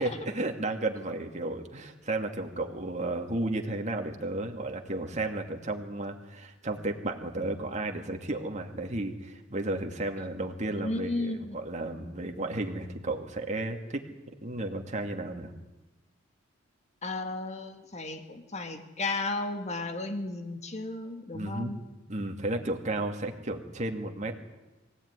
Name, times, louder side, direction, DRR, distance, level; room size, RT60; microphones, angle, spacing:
voice 1, 0.0-14.0 14.4-15.5 21.3-21.7 22.1-24.3, right 2 dB, 35° right, 3 dB, 2.3 m, -33 dB
voice 2, 10.8-11.6 17.0-21.8, left 2 dB, 35° left, 6 dB, 2.2 m, -34 dB
24.0 x 16.5 x 9.7 m, 1.1 s
head